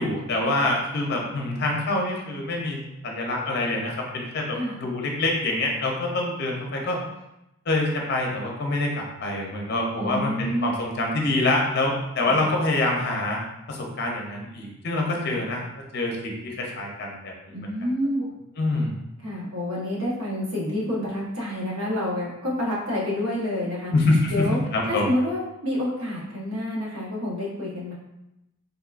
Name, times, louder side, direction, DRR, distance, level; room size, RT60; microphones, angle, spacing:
voice 1, 0.0-7.0 7.7-13.4 13.7-17.7 18.6-18.9 23.9-25.1, left 2 dB, 50° left, 0 dB, 0.5 m, -26 dB
voice 2, 10.0-10.7 12.2-12.5 15.3-15.5 17.5-18.2 19.2-23.9 24.3-24.6 24.9-27.9, left 1 dB, 85° right, -5 dB, 1.0 m, -28 dB
3.5 x 2.3 x 2.4 m, 0.90 s
head